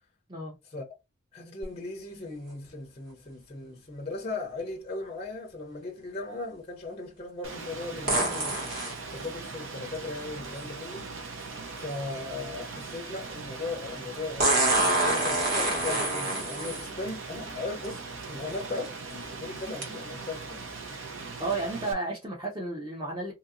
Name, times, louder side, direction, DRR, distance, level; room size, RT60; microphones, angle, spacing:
voice 1, 1.3-8.6 9.1-11.1 11.8-18.0 18.3-20.7, left 3 dB, 30° left, 0.5 m, -38 dB
sound 1, 1.6-1.7 8.1-9.0 11.0-11.1 14.4-16.9 17.8-17.9 18.6-18.9 19.8-19.9, right 2 dB, 45° right, 1.3 m, -26 dB
Rain, 7.4-21.9, right 4 dB, 70° right, 0.7 m, -40 dB
voice 2, 21.4-23.3, right 2 dB, 20° right, 0.7 m, -32 dB
2.8 x 2.5 x 2.5 m
head